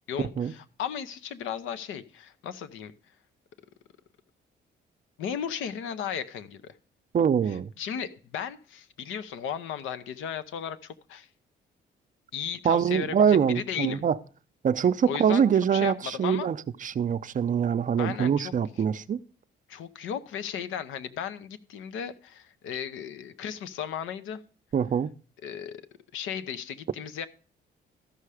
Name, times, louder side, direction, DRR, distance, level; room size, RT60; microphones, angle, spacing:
voice 1, 0.0-2.9 5.2-6.7 7.5-11.3 12.3-14.0 15.1-15.4 15.7-16.5 18.0-18.5 19.7-24.4 25.4-25.8 26.1-27.3, left 8 dB, 85° left, 0.8 m, -35 dB
voice 2, 7.1-7.7 12.6-14.1 14.6-19.2 24.7-25.1, right 7 dB, 40° right, 0.5 m, -24 dB
13.5 x 5.7 x 4.9 m
cardioid pair, 90°, 20 cm